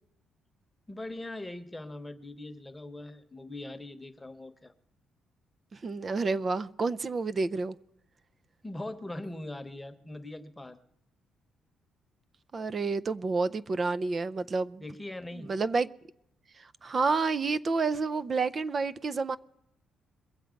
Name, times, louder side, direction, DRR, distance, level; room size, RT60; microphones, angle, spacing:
voice 1, 0.9-4.7 8.6-10.8 14.8-15.5, left 1 dB, 10° left, 1.1 m, -41 dB
voice 2, 5.7-7.8 12.5-14.8 15.4-15.9 16.6-19.4, right 4 dB, 40° right, 0.5 m, -29 dB
22.5 x 7.6 x 5.1 m
cardioid pair, 90°, 0 cm